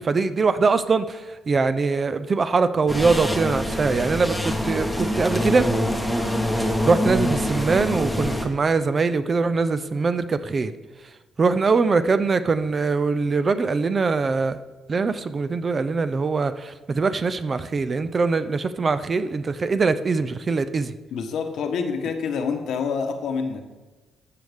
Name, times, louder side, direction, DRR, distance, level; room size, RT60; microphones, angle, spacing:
voice 1, 0.0-5.7 6.6-10.7 11.4-14.6 14.9-20.9, right 4 dB, 30° right, 12 dB, 0.5 m, -22 dB
sound 1, 2.9-8.5, equal, ahead, 1.0 m, -25 dB
voice 2, 21.1-23.6, left 5 dB, 70° left, 5 dB, 1.1 m, -27 dB
14.0 x 6.4 x 3.6 m, 1.2 s
cardioid pair, 130°, 0 cm